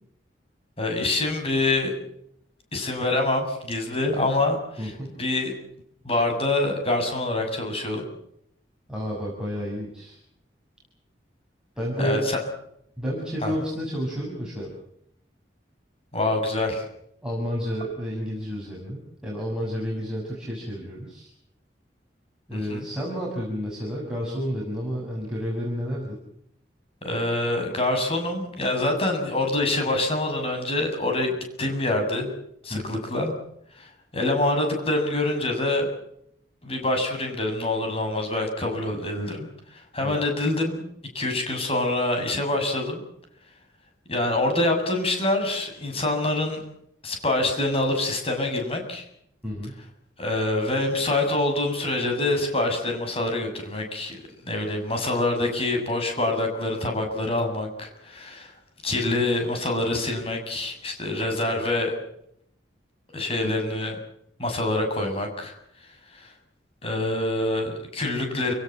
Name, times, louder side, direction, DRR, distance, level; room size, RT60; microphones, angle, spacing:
voice 1, 0.8-1.9 2.7-4.9 5.2-5.5 6.0-8.0 12.0-12.4 13.4-13.5 16.1-16.9 22.5-22.9 27.0-32.3 32.6-33.3 33.8-35.9 36.6-40.8 41.1-43.0 44.1-46.6 47.0-49.1 50.2-58.5 58.8-61.9 63.1-64.0 64.4-65.5 66.1-66.3 66.8-68.5, left 2 dB, 30° left, 4 dB, 7.2 m, -26 dB
voice 2, 4.8-5.2 8.9-10.2 11.8-12.3 13.0-14.7 17.2-21.3 22.5-26.2 32.7-33.0 40.0-40.2 49.4-49.7 61.4-61.7, equal, 5° right, -4 dB, 6.4 m, -31 dB
29.0 x 18.0 x 7.4 m, 0.73 s
head